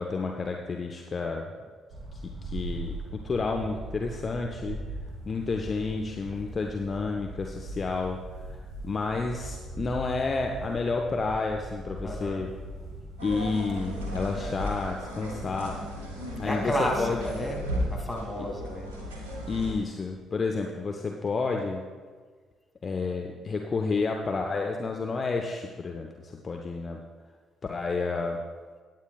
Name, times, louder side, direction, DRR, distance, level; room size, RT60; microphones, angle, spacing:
voice 1, 0.0-1.5 2.1-4.8 5.2-12.5 13.2-15.8 16.4-17.2 18.4-18.5 19.5-21.8 22.8-27.0 27.6-28.4, left 4 dB, 35° left, 2 dB, 0.7 m, -30 dB
sound 1, 1.9-14.7, right 1 dB, 45° right, 2.4 m, -40 dB
voice 2, 12.0-12.4 16.4-17.6 17.8-18.9, equal, 5° left, -1 dB, 2.6 m, -31 dB
sound 2, 13.2-19.7, equal, 75° right, 1.5 m, -35 dB
17.0 x 9.3 x 2.4 m, 1.5 s
figure-of-eight pair, 45°, 0 cm